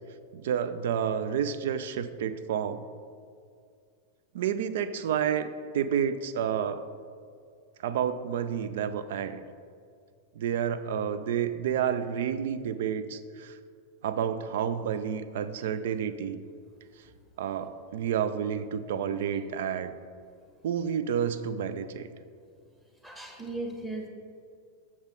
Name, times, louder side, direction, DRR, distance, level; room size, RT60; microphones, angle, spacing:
voice 1, 0.3-2.9 4.3-6.9 7.8-9.4 10.4-13.6 14.0-16.4 17.4-19.9 20.6-22.1, right 8 dB, 55° right, 13 dB, 0.4 m, -30 dB
voice 2, 23.0-24.1, right 2 dB, 10° right, 0 dB, 1.3 m, -36 dB
7.9 x 6.1 x 3.9 m, 2.2 s
figure-of-eight pair, 90°, 0 cm